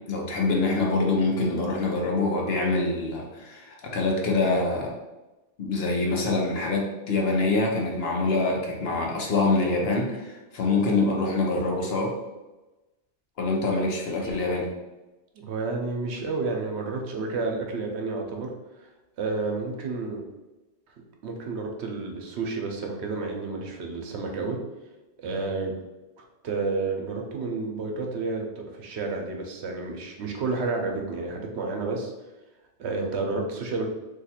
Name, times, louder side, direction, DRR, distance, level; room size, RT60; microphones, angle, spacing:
voice 1, 0.1-4.9 5.6-12.1 13.4-14.7, left 3 dB, 65° left, -1 dB, 0.9 m, -25 dB
voice 2, 15.3-18.5 18.8-18.9 19.2-20.2 21.2-24.6 25.2-25.7 26.4-32.1 32.8-33.9, right 3 dB, 75° right, 2 dB, 0.9 m, -30 dB
2.8 x 2.4 x 4.1 m, 1.1 s
omnidirectional pair, 1.2 m